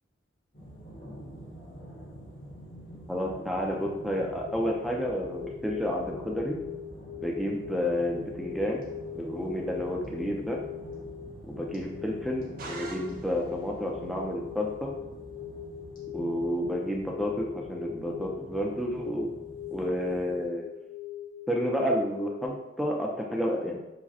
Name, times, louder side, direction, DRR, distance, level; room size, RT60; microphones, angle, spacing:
sound 1, 0.5-20.4, right 1 dB, 45° left, 1.2 m, -46 dB
voice 1, 3.1-6.6 7.2-8.8 9.2-10.6 11.4-14.9 16.1-19.3 19.7-20.7 21.5-23.8, equal, ahead, -1 dB, 0.5 m, -30 dB
sound 2, 4.5-22.5, left 9 dB, 85° left, 0.4 m, -42 dB
sound 3, 12.6-13.7, right 3 dB, 50° right, 0.5 m, -43 dB
4.8 x 2.2 x 4.1 m, 0.95 s
head